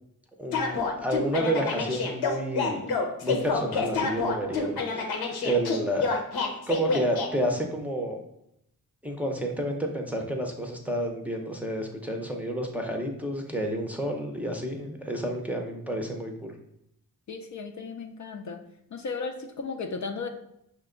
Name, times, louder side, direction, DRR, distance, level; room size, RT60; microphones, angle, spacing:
voice 1, 0.4-6.2 6.7-8.2 9.0-16.5, right 1 dB, 5° right, 1 dB, 0.5 m, -30 dB
sound 1, 0.5-7.3, left 4 dB, 85° left, 0.8 m, -28 dB
voice 2, 17.3-18.6 18.9-20.3, left 4 dB, 50° left, 5 dB, 0.5 m, -35 dB
5.8 x 2.2 x 3.7 m, 0.78 s
wide cardioid pair, 110°, 36 cm